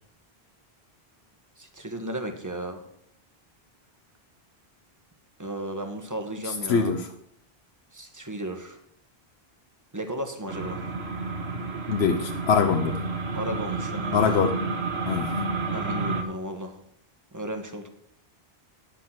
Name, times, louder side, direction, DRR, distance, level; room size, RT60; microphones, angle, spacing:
voice 1, 1.6-2.9 5.4-6.9 7.9-8.8 9.9-10.8 13.3-14.4 15.7-16.8 17.3-17.9, right 1 dB, 20° right, 5 dB, 1.3 m, -34 dB
voice 2, 6.4-7.1 11.9-13.0 14.1-14.5 15.1-15.3, left 6 dB, 90° left, 5 dB, 1.0 m, -23 dB
sound 1, 10.5-16.2, right 3 dB, 80° right, 1.5 m, -30 dB
10.5 x 7.3 x 5.9 m, 0.71 s
omnidirectional pair, 1.1 m